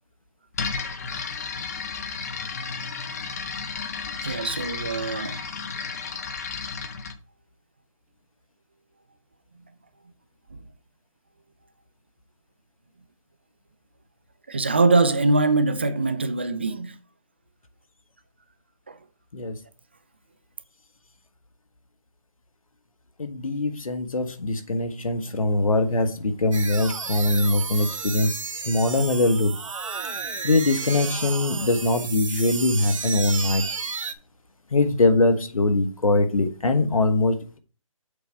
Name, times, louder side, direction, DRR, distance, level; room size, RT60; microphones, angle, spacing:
sound 1, 0.5-7.2, left 5 dB, 30° left, 0.6 m, -33 dB
voice 1, 4.1-5.4 14.5-17.0 18.9-19.0, right 3 dB, 20° right, 0.3 m, -23 dB
voice 2, 23.2-28.4 28.7-29.5 30.4-33.6 34.7-37.6, left 2 dB, 75° left, 1.3 m, -22 dB
sound 2, 26.5-34.1, right 5 dB, 65° right, 1.0 m, -32 dB
6.9 x 4.5 x 5.4 m
figure-of-eight pair, 160°, 18 cm